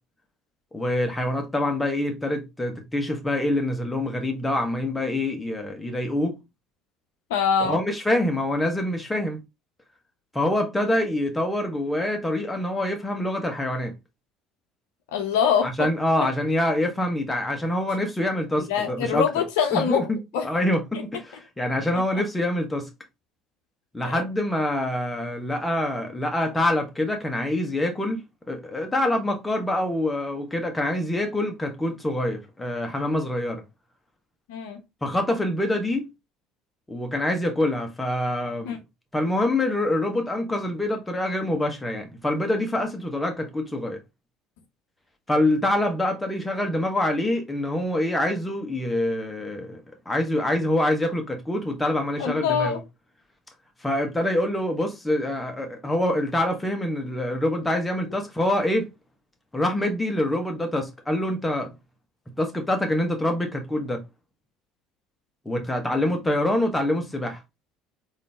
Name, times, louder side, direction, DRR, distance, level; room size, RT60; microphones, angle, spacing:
voice 1, 0.7-6.4 7.6-9.4 10.3-13.9 15.6-19.2 19.7-20.2 20.4-22.9 23.9-33.6 35.0-36.1 36.9-38.8 39.1-44.0 45.3-52.8 53.8-58.9 59.5-61.7 62.4-64.0 65.4-67.4, left 1 dB, 10° left, 1.2 m, -25 dB
voice 2, 7.3-7.8 15.1-15.7 18.7-20.1 20.3-20.5 24.0-24.2 34.5-34.8 38.7-38.8 52.2-52.8, left 7 dB, 70° left, 0.7 m, -23 dB
3.7 x 2.8 x 3.4 m
figure-of-eight pair, 60°, 0 cm